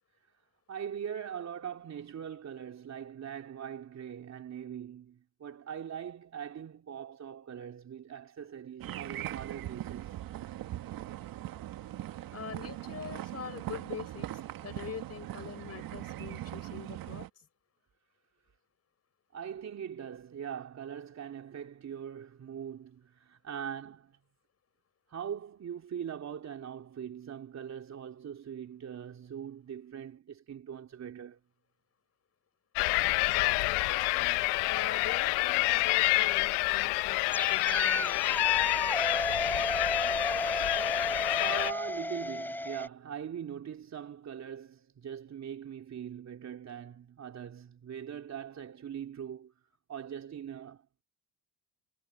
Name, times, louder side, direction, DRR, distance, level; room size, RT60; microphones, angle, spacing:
voice 1, 0.7-10.2 19.3-24.2 25.1-31.4 41.4-49.5 49.9-50.9, right 8 dB, 45° right, 3.3 m, -41 dB
sound 1, 8.8-17.3, right 14 dB, 60° right, 1.9 m, -40 dB
voice 2, 12.3-14.3 14.6-17.5 33.3-37.2 37.5-38.2, left 7 dB, 40° left, 4.5 m, -43 dB
sound 2, 32.8-41.7, left 23 dB, 85° left, 0.8 m, -28 dB
sound 3, 37.3-42.9, left 1 dB, 5° left, 3.5 m, -33 dB
supercardioid pair, 90°, 39 cm